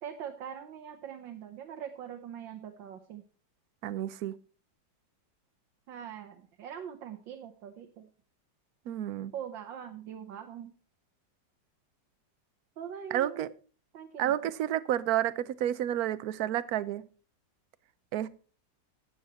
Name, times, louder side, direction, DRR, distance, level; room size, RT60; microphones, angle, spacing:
voice 1, 0.0-3.2 5.9-8.1 9.3-10.7 12.8-13.5 13.9-14.3, right 9 dB, 90° right, 1.8 m, -42 dB
voice 2, 3.8-4.3 8.9-9.3 13.1-13.5 14.2-17.0 18.1-18.3, right 12 dB, 65° right, 1.1 m, -30 dB
13.0 x 8.9 x 4.1 m
omnidirectional pair, 2.0 m